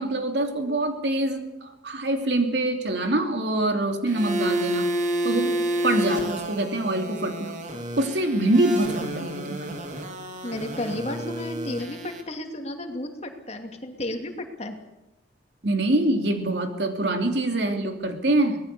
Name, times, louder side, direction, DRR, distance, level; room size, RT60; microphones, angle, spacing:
voice 1, 0.0-4.9 5.2-5.5 5.8-7.5 8.0-9.8 15.6-18.6, right 1 dB, 70° right, 5 dB, 2.9 m, -25 dB
sound 1, 4.1-12.2, equal, 45° right, 3.0 m, -30 dB
voice 2, 10.4-14.8, left 1 dB, 35° left, 4 dB, 2.6 m, -33 dB
24.0 x 19.0 x 6.9 m, 0.97 s
head